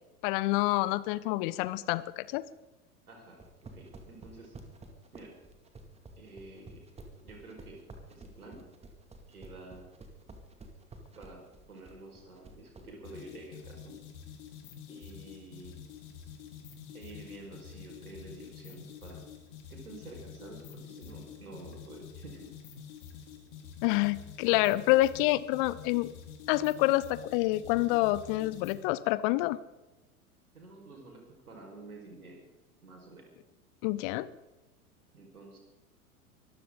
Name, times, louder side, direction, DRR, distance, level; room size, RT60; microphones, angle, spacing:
voice 1, 0.2-2.4 23.8-26.1 26.5-29.6 33.8-34.3, left 18 dB, 35° left, 18 dB, 0.8 m, -27 dB
voice 2, 3.1-4.5 5.1-5.3 6.1-6.8 7.2-7.8 8.1-8.7 9.3-9.9 11.1-14.0 14.9-15.8 16.9-19.2 19.7-22.5 30.5-32.4 32.8-33.3 35.1-35.6, right 2 dB, 75° right, 1 dB, 5.1 m, -49 dB
sound 1, 3.3-12.9, right 2 dB, 15° right, 2.3 m, -50 dB
sound 2, 13.0-28.9, left 8 dB, 50° left, 4.0 m, -48 dB
24.0 x 14.5 x 3.9 m, 1.0 s
figure-of-eight pair, 90°, 45 cm